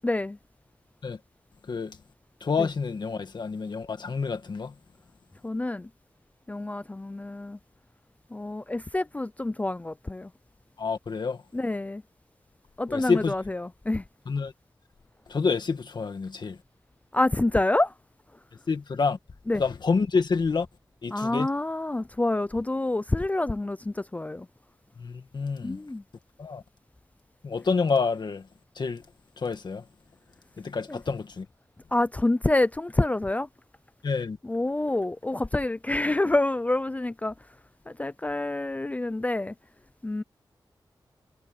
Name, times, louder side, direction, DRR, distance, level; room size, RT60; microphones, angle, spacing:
voice 1, 0.0-0.4 2.6-2.7 5.4-5.9 6.5-7.6 8.3-10.3 11.5-12.0 12.8-14.0 17.1-17.9 19.5-19.6 21.1-24.5 25.6-26.0 30.9-31.0 31.9-33.5 34.4-37.3 37.9-39.5 40.0-40.2, left 2 dB, 15° left, 0.4 m, -27 dB
voice 2, 2.4-4.7 10.8-11.4 12.9-13.3 14.3-14.5 15.3-16.6 18.7-19.2 19.6-20.7 21.0-21.5 25.0-25.8 26.4-26.6 27.4-28.5 28.8-29.0 29.4-29.8 30.6-31.5 34.0-34.4, left 4 dB, 55° left, 1.9 m, -28 dB
wide cardioid pair, 135°, 9 cm